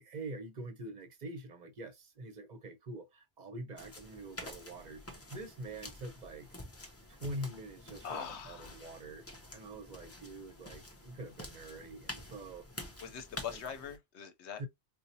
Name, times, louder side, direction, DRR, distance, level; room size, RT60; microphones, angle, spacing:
voice 1, 0.0-6.5 7.1-12.8 13.5-13.6 14.6-14.7, right 1 dB, 50° right, 0.6 m, -45 dB
sound 1, 3.8-14.0, left 1 dB, 20° left, 0.5 m, -49 dB
voice 2, 8.0-8.8 13.0-14.6, left 8 dB, 75° left, 0.9 m, -42 dB
4.2 x 2.1 x 2.6 m
omnidirectional pair, 1.2 m